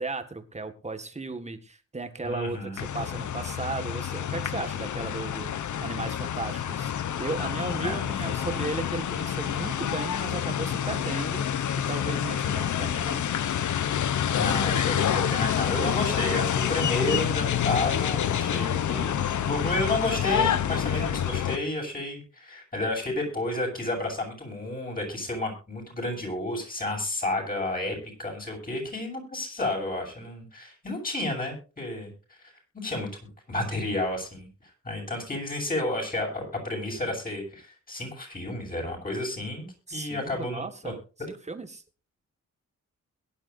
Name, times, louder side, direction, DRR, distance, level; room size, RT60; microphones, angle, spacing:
voice 1, 0.0-6.9 7.2-13.2 39.9-41.0 41.5-41.8, right 3 dB, 20° right, 8 dB, 1.8 m, -35 dB
voice 2, 2.2-2.8 7.8-8.0 14.4-32.1 32.4-33.1 33.5-34.5 34.8-40.9, left 2 dB, 30° left, 0 dB, 7.8 m, -31 dB
sound 1, 2.8-21.6, left 9 dB, 75° left, 0.9 m, -28 dB
22.0 x 11.0 x 2.6 m, 0.34 s
wide cardioid pair, 120°, 30 cm